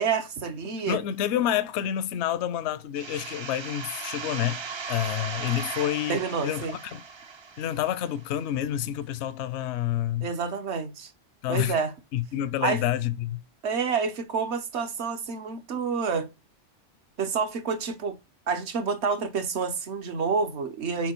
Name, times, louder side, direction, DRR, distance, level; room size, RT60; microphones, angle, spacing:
voice 1, 0.0-1.0 6.1-6.7 10.2-11.1 11.5-11.9 12.6-12.8 13.6-16.3 17.2-18.1 18.5-21.1, right 5 dB, 70° right, 1.2 m, -28 dB
voice 2, 0.9-4.6 4.9-7.0 7.6-10.3 11.4-11.8 12.1-13.4, left 11 dB, 75° left, 0.8 m, -28 dB
sound 1, 3.0-8.5, right 5 dB, 45° right, 0.3 m, -37 dB
6.0 x 4.6 x 4.4 m
omnidirectional pair, 1.2 m